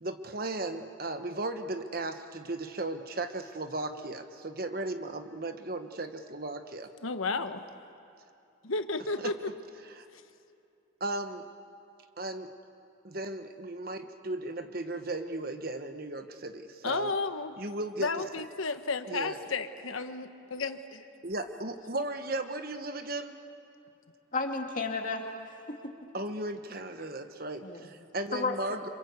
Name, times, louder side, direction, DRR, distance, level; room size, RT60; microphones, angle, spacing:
voice 1, 0.0-6.9 9.2-9.3 10.0-10.1 11.0-11.4 12.2-12.5 13.0-17.1 17.6-18.1 19.1-19.4 21.2-23.4 26.1-28.9, right 2 dB, 45° right, 7 dB, 1.2 m, -36 dB
voice 2, 7.0-7.6 8.6-9.3 10.1-10.2 16.8-17.6 18.0-21.1, left 3 dB, 90° left, 9 dB, 1.2 m, -32 dB
voice 3, 24.3-25.9 27.6-27.9 28.3-28.9, left 3 dB, 40° left, 2 dB, 2.3 m, -33 dB
27.5 x 26.5 x 8.1 m, 2.6 s
head